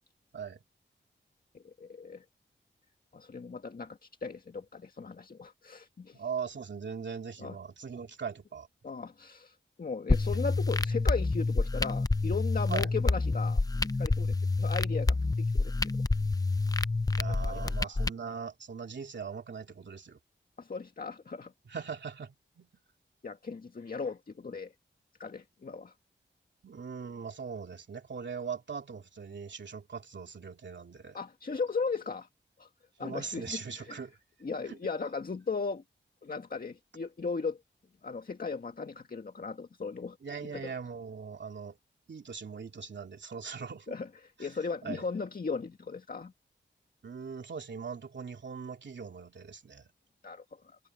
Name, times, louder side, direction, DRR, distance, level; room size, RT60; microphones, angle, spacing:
voice 1, 1.5-2.2 3.1-6.2 7.4-7.6 8.8-13.6 14.0-15.2 15.5-15.7 17.4-18.0 20.6-21.5 23.2-24.7 25.2-25.9 31.1-32.3 32.6-32.7 33.0-34.0 34.4-35.8 36.2-37.6 38.0-40.2 40.5-40.7 43.9-46.3 50.2-50.8, left 4 dB, 50° left, 1.8 m, -37 dB
voice 2, 6.1-8.7 12.7-12.9 17.1-20.2 21.7-22.7 26.6-31.2 33.0-34.1 34.7-34.8 40.2-41.8 42.1-43.9 44.4-44.5 44.8-45.1 47.0-49.9, right 6 dB, 65° right, 2.8 m, -40 dB
sound 1, 10.1-18.1, left 3 dB, 20° left, 0.5 m, -28 dB
wide cardioid pair, 95°, 20 cm